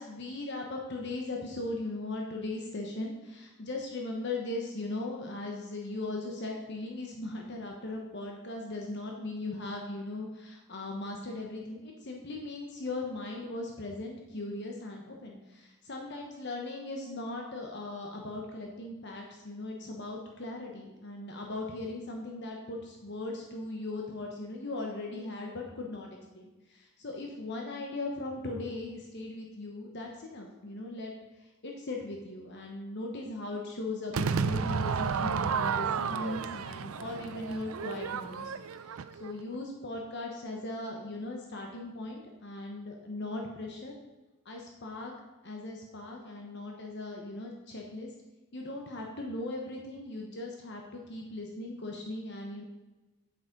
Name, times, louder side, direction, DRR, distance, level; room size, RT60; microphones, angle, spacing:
voice 1, 0.0-43.9 44.4-45.1 45.4-48.1 48.5-52.6, left 2 dB, 55° left, 1 dB, 1.1 m, -38 dB
Crowd / Fireworks, 34.1-39.4, right 6 dB, 75° right, 0.5 m, -32 dB
8.2 x 8.0 x 5.3 m, 1.1 s
head